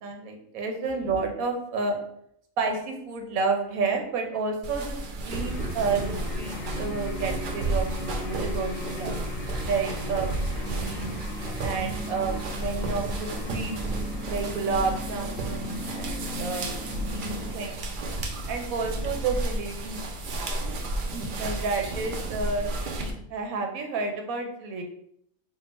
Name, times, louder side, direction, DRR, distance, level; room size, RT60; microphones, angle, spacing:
voice 1, 0.0-2.0 2.6-9.2 9.6-10.3 10.6-11.1 11.6-13.7 14.3-16.7 17.1-17.8 18.5-20.0 21.1-22.7 23.3-24.8, right 4 dB, 90° right, 3 dB, 1.2 m, -30 dB
Footsteps dancing multiple people, 4.6-23.1, right 2 dB, 65° right, 0.5 m, -32 dB
sound 1, 5.3-17.5, left 2 dB, 80° left, 1.0 m, -37 dB
3.7 x 2.2 x 4.0 m, 0.70 s
omnidirectional pair, 1.4 m